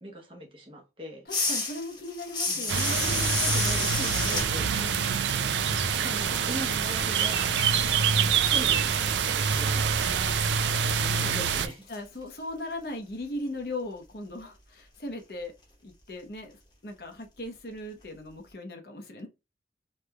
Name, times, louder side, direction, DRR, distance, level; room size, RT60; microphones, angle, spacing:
voice 1, 0.0-1.3 2.5-2.7 3.9-4.7 6.0-7.6 8.2-10.1 10.9-11.8, equal, 30° right, 0.9 m, -40 dB
voice 2, 1.3-5.2 10.0-10.4 11.9-15.5 15.8-16.5 16.8-19.3, left 1 dB, 60° left, 0.9 m, -38 dB
sound 1, 1.3-6.8 7.1-12.0, left 3 dB, 25° left, 1.1 m, -33 dB
sound 2, 2.7-11.7, right 6 dB, 80° right, 0.4 m, -26 dB
3.3 x 3.1 x 2.3 m
head